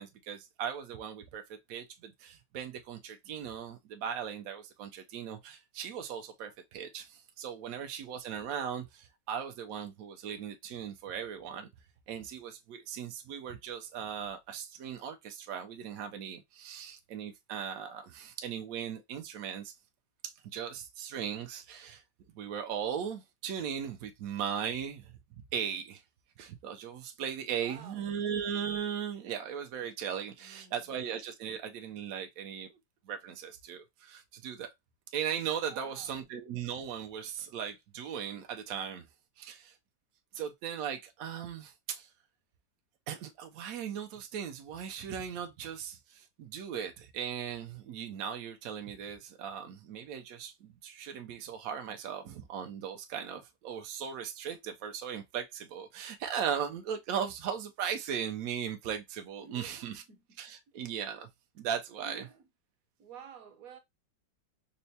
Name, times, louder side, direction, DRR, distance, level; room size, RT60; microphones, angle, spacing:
voice 1, 0.0-1.4 1.7-11.7 12.1-19.8 20.2-22.0 22.3-25.1 25.5-26.0 26.4-32.8 33.1-34.7 35.1-39.1 39.4-39.8 40.3-42.1 43.1-60.0 60.4-61.3 61.6-62.2, right 8 dB, 80° right, 0.7 m, -38 dB
voice 2, 27.4-28.2 30.4-30.9 35.7-36.3 59.4-60.2 62.0-62.5 63.0-63.8, right 7 dB, 60° right, 1.0 m, -52 dB
5.4 x 2.1 x 2.7 m
omnidirectional pair, 2.1 m